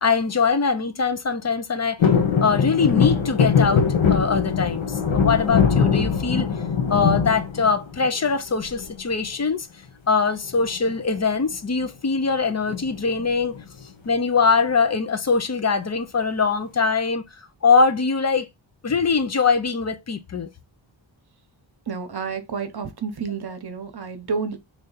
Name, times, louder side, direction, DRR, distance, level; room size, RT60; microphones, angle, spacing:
voice 1, 0.0-2.0 2.4-6.5 6.9-9.7 10.1-13.6 14.1-17.2 17.6-18.5 18.8-20.5, left 5 dB, 35° left, 0.5 m, -22 dB
sound 1, 2.0-8.2 8.6-9.2 10.5-10.9 11.2-11.3 11.5-11.8 12.7-13.6 14.1-14.2, left 6 dB, 80° left, 1.0 m, -21 dB
voice 2, 21.9-24.6, right 5 dB, 55° right, 0.8 m, -30 dB
3.3 x 2.7 x 3.8 m
wide cardioid pair, 125°, 47 cm